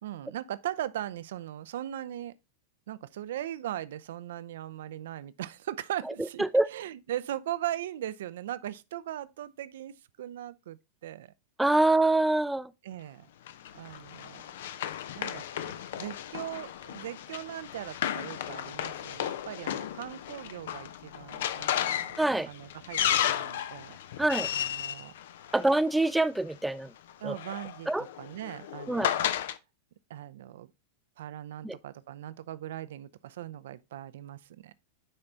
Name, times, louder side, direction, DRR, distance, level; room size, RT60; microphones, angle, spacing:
voice 1, 0.0-2.3 2.9-11.3 12.8-13.3 13.7-14.4 15.1-22.1 22.5-24.0 24.5-25.1 27.2-29.3 30.1-30.7 31.2-34.7, right 12 dB, 60° right, 0.5 m, -39 dB
voice 2, 11.6-12.7 22.2-22.5 24.2-24.5 25.5-26.9 27.2-27.4 27.9-28.0 28.9-29.1 31.6-31.8, right 2 dB, 5° right, 0.4 m, -25 dB
Run, 13.5-26.1 27.1-29.6, left 10 dB, 55° left, 0.5 m, -34 dB
9.9 x 4.3 x 3.8 m
figure-of-eight pair, 90°, 0 cm